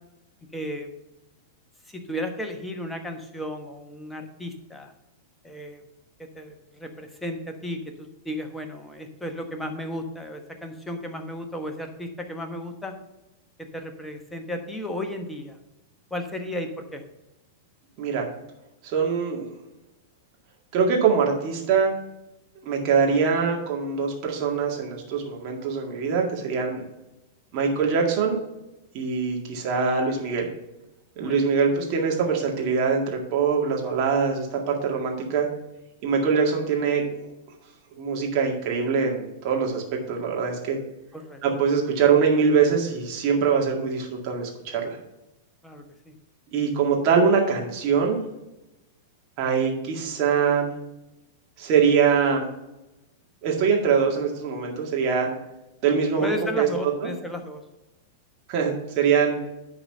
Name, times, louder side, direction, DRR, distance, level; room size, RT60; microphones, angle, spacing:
voice 1, 0.5-0.9 1.9-4.9 5.4-5.8 6.2-13.0 13.6-15.6 16.1-17.0 31.2-31.4 41.1-41.4 45.6-46.2 56.2-57.6, left 1 dB, 5° left, 4 dB, 1.2 m, -34 dB
voice 2, 18.8-19.4 20.7-21.9 22.6-26.8 27.5-28.4 28.9-30.5 31.2-35.5 36.0-37.2 37.9-40.8 41.4-45.0 46.5-48.2 49.4-50.7 51.6-52.5 53.4-55.4 55.8-56.7 58.5-59.4, right 6 dB, 40° right, 0 dB, 2.1 m, -23 dB
10.5 x 4.0 x 5.5 m, 0.96 s
figure-of-eight pair, 95°, 0 cm